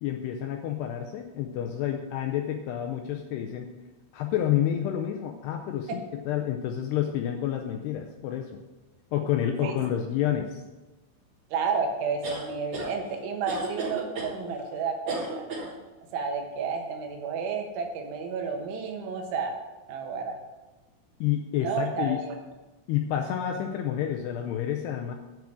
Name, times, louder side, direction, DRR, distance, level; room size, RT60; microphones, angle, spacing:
voice 1, 0.0-3.7 4.1-8.6 9.1-10.6 21.2-22.2 22.9-25.1, left 10 dB, 85° left, 3 dB, 2.4 m, -29 dB
voice 2, 11.5-15.5 16.1-19.5 19.9-20.4 21.6-22.4, right 5 dB, 80° right, 3 dB, 3.6 m, -31 dB
sound 1, 12.2-12.9 13.5-14.3 15.1-15.7, right 3 dB, 45° right, 3.8 m, -34 dB
8.6 x 6.1 x 7.6 m, 1.1 s
omnidirectional pair, 5.4 m